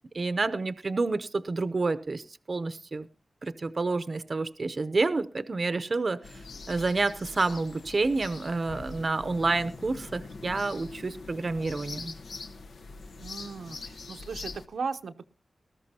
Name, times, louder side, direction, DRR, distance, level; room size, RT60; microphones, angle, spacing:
voice 1, 0.1-3.1 3.4-6.2 6.7-12.1, right 3 dB, 45° right, 13 dB, 0.6 m, -29 dB
sound 1, 6.2-14.7, left 3 dB, 85° left, 0.9 m, -43 dB
voice 2, 13.2-15.3, right 5 dB, 85° right, 7 dB, 0.7 m, -37 dB
19.5 x 13.5 x 2.8 m, 0.36 s
wide cardioid pair, 115°, 0 cm